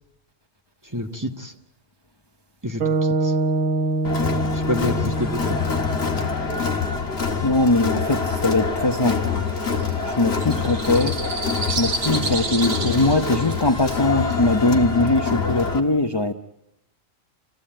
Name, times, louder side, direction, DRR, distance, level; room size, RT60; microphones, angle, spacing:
voice 1, 0.8-1.5 2.6-3.4 4.5-5.6, left 1 dB, 15° right, 2 dB, 1.6 m, -28 dB
sound 1, 2.8-7.1, right 2 dB, 90° right, 1.8 m, -25 dB
Crowd, 4.0-15.8, left 5 dB, 50° left, 2.1 m, -25 dB
voice 2, 7.4-9.3 10.0-11.2 11.8-16.3, left 2 dB, 20° left, 5 dB, 0.8 m, -21 dB
sound 2, 9.5-14.6, right 3 dB, 55° right, 1.5 m, -32 dB
28.0 x 16.5 x 8.9 m, 0.85 s
omnidirectional pair, 1.4 m